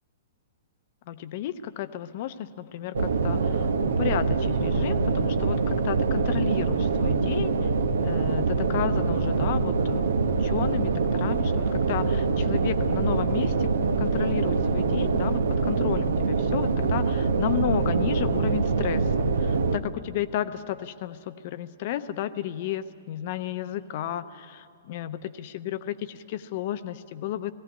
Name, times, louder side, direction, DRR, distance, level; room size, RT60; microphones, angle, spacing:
voice 1, 1.1-7.7 8.0-13.7 14.0-27.5, left 11 dB, 45° left, 13 dB, 0.8 m, -32 dB
sound 1, 2.9-19.8, right 4 dB, 65° right, 1.1 m, -24 dB
18.0 x 16.0 x 10.0 m, 2.3 s
figure-of-eight pair, 110°, 0 cm